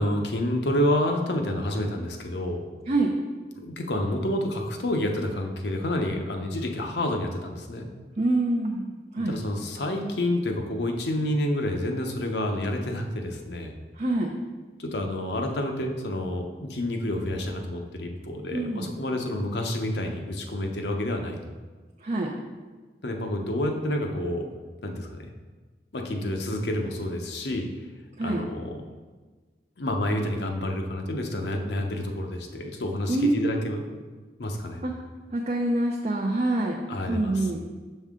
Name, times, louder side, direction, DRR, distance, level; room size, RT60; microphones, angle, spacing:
voice 1, 0.0-2.6 3.6-7.9 9.3-13.7 14.8-21.4 23.0-24.5 24.8-25.3 25.9-27.7 28.2-28.8 29.8-33.8 34.4-34.8 36.9-37.5, left 1 dB, 75° left, 3 dB, 0.8 m, -29 dB
voice 2, 8.2-9.4 14.0-14.4 18.5-18.9 22.0-22.3 28.2-28.4 33.1-33.5 34.8-34.9 35.3-36.8 37.1-37.6, right 2 dB, 40° right, 0 dB, 0.5 m, -26 dB
6.5 x 5.4 x 3.6 m, 1.4 s
head